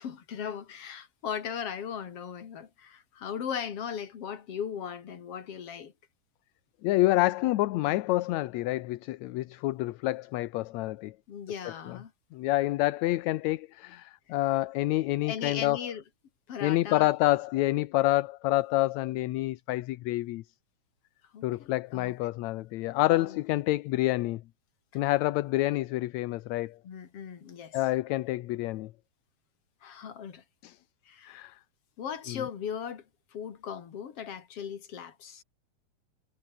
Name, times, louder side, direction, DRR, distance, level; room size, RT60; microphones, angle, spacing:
voice 1, 0.0-5.9 11.3-12.1 15.2-16.0 16.5-17.1 21.3-22.1 23.1-23.4 26.8-27.8 29.8-30.4 31.1-31.4 32.0-33.0 33.3-35.4, left 8 dB, 50° left, 3.1 m, -38 dB
voice 2, 6.8-11.2 11.9-12.0 12.3-15.8 16.6-20.4 21.4-24.4 24.9-26.8 27.7-28.9 30.6-30.8 31.2-31.6 32.3-32.4, left 17 dB, 75° left, 1.9 m, -28 dB
omnidirectional pair, 3.5 m